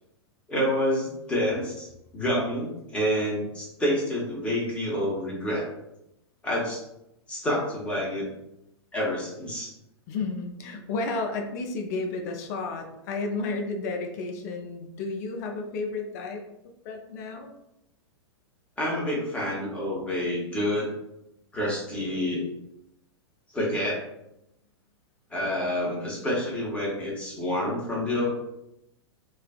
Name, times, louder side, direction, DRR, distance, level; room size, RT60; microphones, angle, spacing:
voice 1, 0.5-1.9 2.1-5.7 6.4-6.8 7.3-8.3 8.9-9.7 18.8-20.9 21.5-22.4 23.5-24.0 25.3-28.3, left 1 dB, 10° left, -5 dB, 0.8 m, -28 dB
voice 2, 10.1-16.5 16.8-17.5, left 3 dB, 40° left, 4 dB, 0.4 m, -32 dB
2.4 x 2.3 x 2.3 m, 0.84 s
figure-of-eight pair, 100°, 14 cm